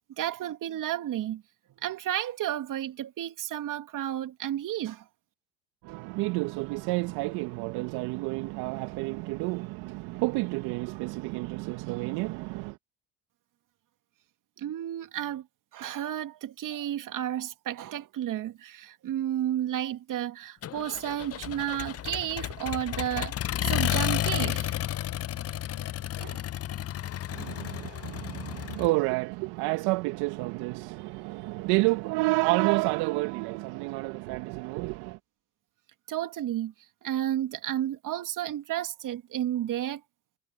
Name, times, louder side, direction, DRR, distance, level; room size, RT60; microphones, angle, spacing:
voice 1, 0.2-1.4 1.8-5.0 14.6-15.5 15.7-23.4 23.6-24.8 26.2-26.5 27.4-27.5 36.1-36.7 37.0-40.0, right 12 dB, 50° right, 2.7 m, -32 dB
voice 2, 5.8-12.8 27.3-35.2, right 24 dB, 65° right, 1.7 m, -30 dB
Accelerating revving vroom, 20.6-28.9, left 12 dB, 35° left, 0.8 m, -32 dB
hypercardioid pair, 70°, 41 cm